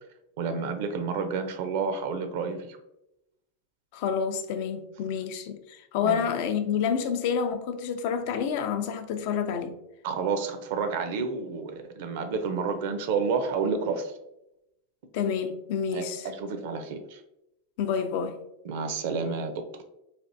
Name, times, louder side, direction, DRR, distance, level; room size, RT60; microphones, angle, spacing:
voice 1, 0.4-2.8 6.0-6.2 10.0-14.2 15.9-17.2 18.6-19.8, right 5 dB, 65° right, 0.5 m, -30 dB
voice 2, 3.9-9.8 15.1-16.3 17.8-18.4, left 7 dB, 60° left, 0.4 m, -28 dB
3.3 x 2.5 x 2.6 m
hypercardioid pair, 100°, 0 cm